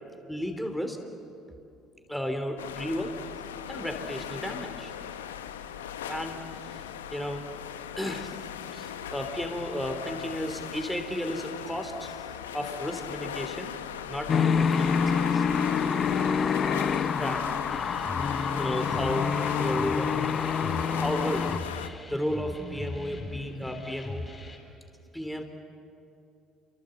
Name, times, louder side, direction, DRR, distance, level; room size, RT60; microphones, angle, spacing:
voice 1, 0.3-1.0 2.1-3.2 3.7-4.9 6.1-7.4 8.0-8.3 8.7-12.2 12.5-13.7 14.1-15.5 17.2-17.5 18.5-20.1 20.9-24.2 25.1-25.4, equal, 5° left, 5 dB, 3.2 m, -34 dB
sound 1, 2.6-21.9, left 9 dB, 90° left, 0.9 m, -39 dB
sound 2, 14.3-21.6, left 6 dB, 45° left, 0.9 m, -26 dB
sound 3, 17.7-24.6, left 2 dB, 20° left, 7.0 m, -39 dB
29.0 x 25.0 x 7.9 m, 2.7 s
hypercardioid pair, 60°, 0 cm